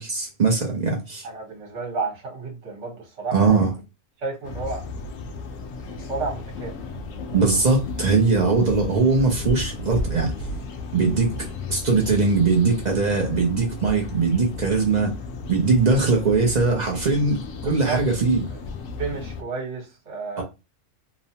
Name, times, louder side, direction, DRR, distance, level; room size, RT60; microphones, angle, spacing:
voice 1, 0.0-1.3 3.3-3.7 7.3-10.3 10.9-15.1 15.5-18.5 20.4-20.5, right 4 dB, 50° right, 0.5 m, -21 dB
voice 2, 1.2-3.6 4.2-4.8 5.9-6.8 17.6-18.0 18.5-18.6 19.0-20.4, right 4 dB, 65° right, 1.4 m, -31 dB
sound 1, 4.4-19.4, left 2 dB, 80° left, 1.0 m, -34 dB
2.9 x 2.0 x 2.7 m
omnidirectional pair, 1.3 m